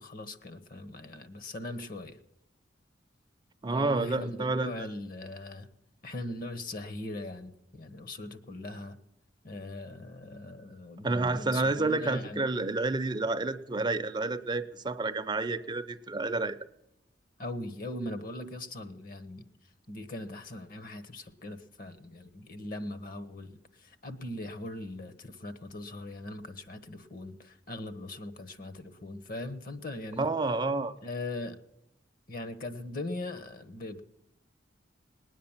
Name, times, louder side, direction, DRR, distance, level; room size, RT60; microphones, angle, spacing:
voice 1, 0.0-2.2 3.7-5.7 6.0-9.0 9.4-12.5 17.4-19.5 19.9-30.3 31.0-31.6 32.3-34.0, left 2 dB, 55° left, 11 dB, 1.2 m, -40 dB
voice 2, 3.6-4.9 11.0-16.6 30.2-30.9, right 3 dB, 25° right, 10 dB, 0.5 m, -29 dB
19.5 x 9.5 x 7.3 m, 0.85 s
head